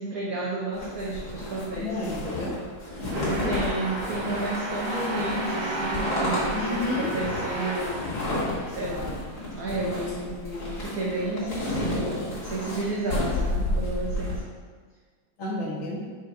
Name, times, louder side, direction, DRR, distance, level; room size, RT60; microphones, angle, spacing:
voice 1, 0.0-2.0 3.1-8.0 8.7-9.1 9.5-14.4, right 2 dB, 65° right, -5 dB, 0.9 m, -31 dB
sound 1, 0.8-14.4, left 2 dB, 45° left, 1.5 m, -31 dB
voice 2, 1.8-2.6 3.0-3.6 6.5-7.1 15.4-16.1, left 2 dB, 70° left, -5 dB, 0.8 m, -31 dB
sound 2, 3.1-8.8, right 1 dB, 85° right, 1.8 m, -32 dB
4.3 x 2.5 x 4.6 m, 1.5 s
omnidirectional pair, 2.2 m